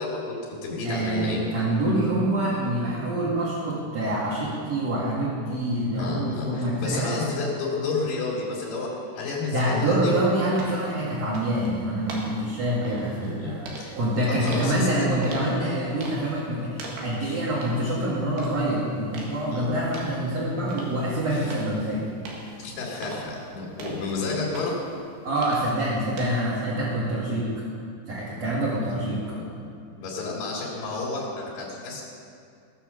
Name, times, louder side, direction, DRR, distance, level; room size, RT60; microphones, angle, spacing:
voice 1, 0.0-1.5 6.0-10.1 12.8-14.0 14.2-15.4 17.2-17.4 19.5-19.7 21.4-21.5 22.6-24.7 29.3-29.4 30.0-32.0, left 3 dB, 70° left, -4 dB, 4.2 m, -31 dB
voice 2, 0.8-7.2 9.5-13.6 13.9-22.1 25.2-27.5 28.1-29.2, right 1 dB, 45° right, -8 dB, 3.0 m, -26 dB
sound 1, 10.6-26.4, right 2 dB, 75° right, 3.9 m, -42 dB
18.5 x 6.9 x 6.9 m, 2.4 s
omnidirectional pair, 4.8 m